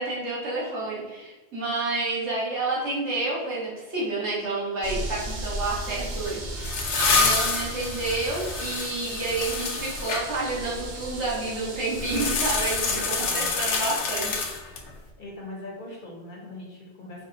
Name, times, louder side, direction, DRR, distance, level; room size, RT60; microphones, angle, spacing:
voice 1, 0.0-14.7, right 2 dB, 80° right, -5 dB, 1.6 m, -30 dB
sound 1, 4.8-13.4, right 2 dB, 50° right, 0.7 m, -36 dB
sound 2, 6.3-10.2 12.0-14.9, left 4 dB, 80° left, 1.0 m, -27 dB
voice 2, 12.9-13.5 15.2-17.3, left 2 dB, 50° left, -2 dB, 1.1 m, -41 dB
4.3 x 4.2 x 2.7 m, 1.2 s
omnidirectional pair, 1.2 m